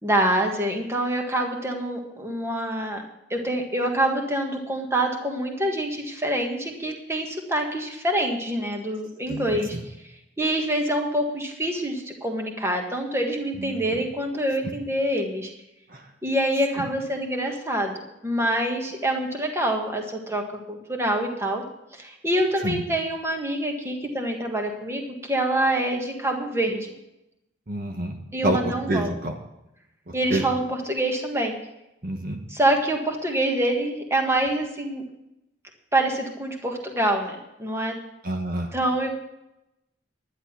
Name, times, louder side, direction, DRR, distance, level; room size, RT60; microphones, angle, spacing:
voice 1, 0.0-3.0 3.3-9.9 10.4-15.5 16.2-20.4 20.7-21.6 21.9-26.9 28.3-29.2 30.1-31.5 32.5-35.0 35.9-38.0 38.7-39.1, right 1 dB, 15° right, 2 dB, 1.7 m, -26 dB
voice 2, 27.7-28.2 28.4-28.6 28.8-29.4 30.3-30.5 32.0-32.4 38.2-38.7, right 1 dB, 50° right, 3 dB, 1.2 m, -27 dB
11.0 x 10.5 x 5.9 m, 0.89 s
head